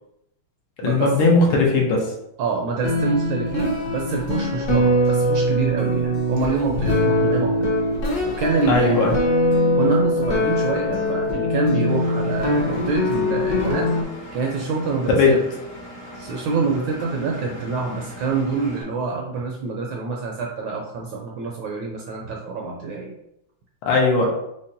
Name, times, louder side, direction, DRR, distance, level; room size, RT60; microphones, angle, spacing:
voice 1, 0.8-2.1 8.7-9.2 15.1-15.3 23.9-24.3, left 3 dB, 80° left, -1 dB, 1.7 m, -18 dB
voice 2, 2.4-7.7 8.2-9.0 9.7-13.9 14.3-15.4 16.1-23.1, right 4 dB, 75° right, 0 dB, 1.1 m, -26 dB
sound 1, 2.8-14.0, left 1 dB, 60° left, 1.1 m, -22 dB
Engine, 11.9-18.8, equal, 45° left, 0.6 m, -40 dB
5.5 x 2.1 x 2.5 m, 0.79 s
omnidirectional pair, 2.4 m